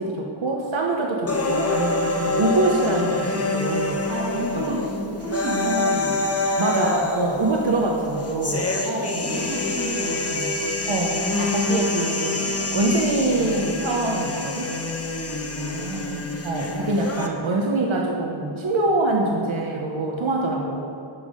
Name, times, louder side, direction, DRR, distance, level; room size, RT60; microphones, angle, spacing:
voice 1, 0.0-4.0 4.7-4.8 6.6-8.7 10.9-14.7 16.4-20.8, right 2 dB, 80° right, 0 dB, 0.9 m, -24 dB
sound 1, 1.3-17.3, left 2 dB, 30° left, 0.8 m, -26 dB
voice 2, 4.1-6.3 8.1-10.5 15.6-16.3, right 1 dB, 60° right, -4 dB, 1.7 m, -31 dB
9.3 x 5.4 x 5.0 m, 2.7 s
wide cardioid pair, 55°, 46 cm